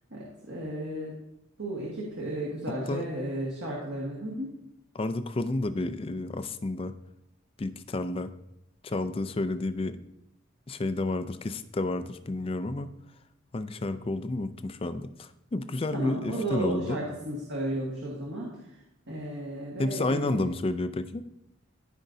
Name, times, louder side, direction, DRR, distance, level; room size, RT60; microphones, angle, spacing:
voice 1, 0.1-1.1 1.6-4.5 15.9-18.6 19.1-20.5, right 1 dB, 65° right, -4 dB, 1.6 m, -34 dB
voice 2, 4.9-6.9 7.6-8.3 8.8-10.0 10.7-12.9 13.5-17.0 19.8-21.2, left 2 dB, 25° left, 11 dB, 0.3 m, -31 dB
14.5 x 5.1 x 2.7 m, 0.83 s
head